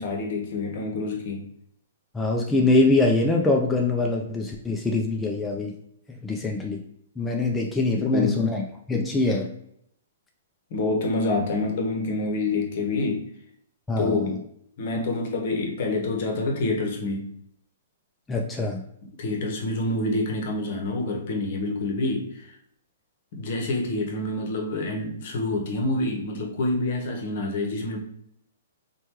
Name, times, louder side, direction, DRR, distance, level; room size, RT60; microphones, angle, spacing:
voice 1, 0.0-1.5 7.9-8.4 10.7-13.3 14.0-14.4 14.8-17.3 19.2-22.6 23.3-28.0, left 2 dB, 55° left, 2 dB, 0.8 m, -27 dB
voice 2, 2.1-5.7 6.1-6.8 7.2-9.5 13.9-14.3 18.3-18.8, left 2 dB, 10° left, 0 dB, 0.3 m, -23 dB
3.0 x 2.2 x 3.0 m, 0.72 s
hypercardioid pair, 125°, 0 cm